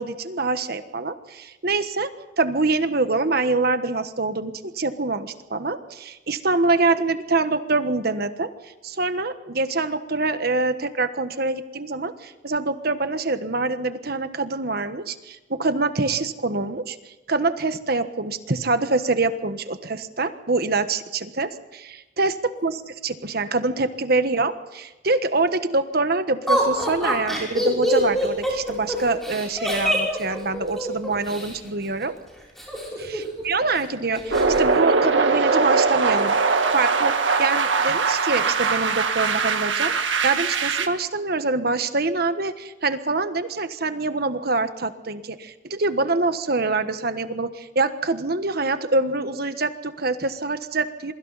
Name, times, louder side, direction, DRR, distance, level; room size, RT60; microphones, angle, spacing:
voice 1, 0.0-2.1 2.4-22.3 22.6-32.1 33.0-36.4 36.7-51.1, right 3 dB, 55° right, 10 dB, 1.4 m, -25 dB
Laughter, 26.5-31.5 32.6-33.4 33.7-33.8 34.2-34.6, equal, ahead, 6.7 m, -25 dB
sound 1, 34.3-40.9, right 4 dB, 85° right, 1.8 m, -21 dB
27.5 x 23.0 x 4.2 m, 1.1 s
head